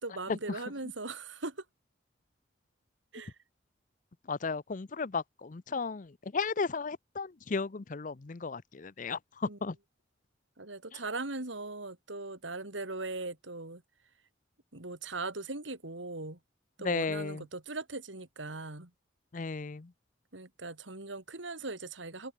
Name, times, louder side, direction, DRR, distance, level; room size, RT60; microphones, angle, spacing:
voice 1, 0.0-1.6 3.1-3.3 9.4-9.6 10.6-13.8 14.7-16.4 16.8-18.9 20.3-22.3, right 3 dB, 85° right, 3.2 m, -39 dB
voice 2, 4.3-9.8 16.8-17.4 19.3-19.9, left 4 dB, 45° left, 0.6 m, -34 dB
head